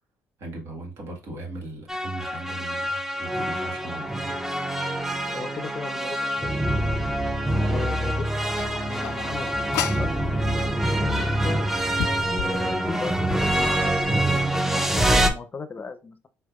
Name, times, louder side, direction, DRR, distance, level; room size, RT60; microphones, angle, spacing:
voice 1, 0.4-4.1, right 2 dB, 65° right, 1.6 m, -38 dB
sound 1, 1.9-15.3, right 1 dB, 5° right, 0.6 m, -25 dB
voice 2, 5.3-6.7 7.6-8.3 8.7-10.1 10.7-11.7 12.4-16.3, left 4 dB, 35° left, 0.6 m, -36 dB
sound 2, 8.6-10.1 11.1-11.2 11.7-13.5, left 12 dB, 80° left, 0.3 m, -33 dB
4.5 x 3.3 x 2.4 m
cardioid pair, 80°, 5 cm